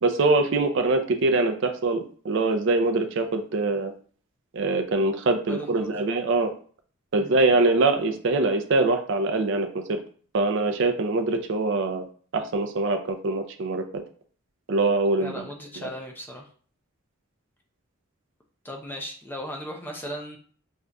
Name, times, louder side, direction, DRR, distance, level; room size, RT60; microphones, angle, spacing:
voice 1, 0.0-3.9 4.5-6.5 7.1-10.0 10.3-12.0 12.3-13.8 14.7-15.4 15.8-15.9, right 3 dB, 60° right, 6 dB, 0.4 m, -23 dB
voice 2, 5.5-5.9 7.2-7.4 15.2-16.5 18.6-20.4, equal, 10° left, 1 dB, 0.4 m, -37 dB
5.2 x 2.4 x 2.2 m, 0.44 s
head